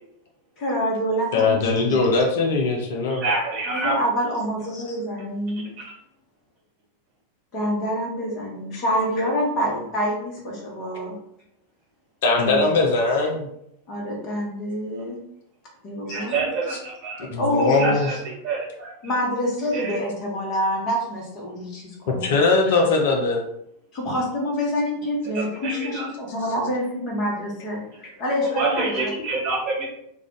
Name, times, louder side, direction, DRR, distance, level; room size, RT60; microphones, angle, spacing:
voice 1, 0.6-2.0 3.7-5.7 7.5-11.1 12.4-12.9 13.9-15.2 15.8-16.4 17.4-18.2 19.0-22.3 23.9-29.1, equal, 35° left, -2 dB, 1.1 m, -27 dB
voice 2, 1.3-3.2 12.2-13.5 17.2-18.1 22.1-23.4, left 3 dB, 55° left, 0 dB, 0.5 m, -20 dB
voice 3, 3.1-4.0 5.8-5.9 16.1-17.3 17.8-18.2 18.4-18.9 19.7-20.0 25.3-26.1 28.5-29.9, right 3 dB, 40° right, -3 dB, 1.3 m, -27 dB
2.4 x 2.4 x 3.7 m, 0.76 s
figure-of-eight pair, 90°, 0 cm